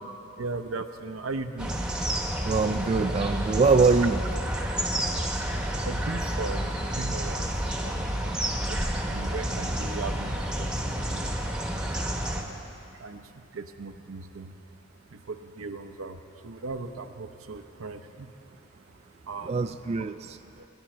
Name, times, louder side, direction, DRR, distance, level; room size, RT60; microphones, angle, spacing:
voice 1, 0.4-1.8 5.8-7.4 7.8-8.3 8.7-8.8 9.1-11.3 12.2-12.6 13.0-13.2 13.5-14.5 15.1-18.3 19.3-19.7 20.6-20.7, right 3 dB, 85° right, 8 dB, 0.7 m, -37 dB
sound 1, 1.6-12.4, right 1 dB, 5° right, 1.1 m, -30 dB
voice 2, 2.4-4.2 8.3-8.4 19.4-20.4, right 4 dB, 30° right, 8 dB, 0.3 m, -23 dB
22.0 x 10.5 x 4.4 m, 2.7 s
head